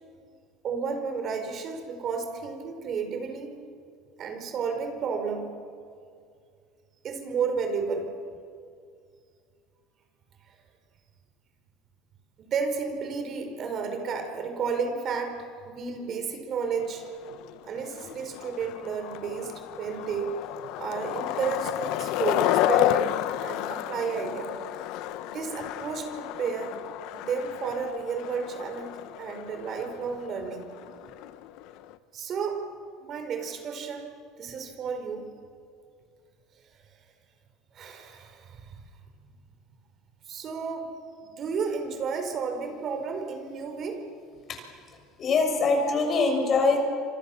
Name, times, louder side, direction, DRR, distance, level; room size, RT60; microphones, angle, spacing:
voice 1, 0.6-3.5 4.2-5.5 7.0-8.1 12.4-17.0 17.6-20.4 20.8-23.1 23.4-24.5 25.2-26.8 27.1-28.9 29.2-30.7 32.1-32.6 33.0-34.1 34.4-35.3 37.7-38.8 40.3-40.9 41.2-44.0, right 5 dB, 45° right, 5 dB, 4.9 m, -32 dB
Skateboard, 16.8-32.0, left 13 dB, 70° left, 1.1 m, -31 dB
voice 2, 45.2-46.8, left 4 dB, 40° left, 3 dB, 6.9 m, -23 dB
29.0 x 26.5 x 7.3 m, 2.3 s
supercardioid pair, 105°, 0 cm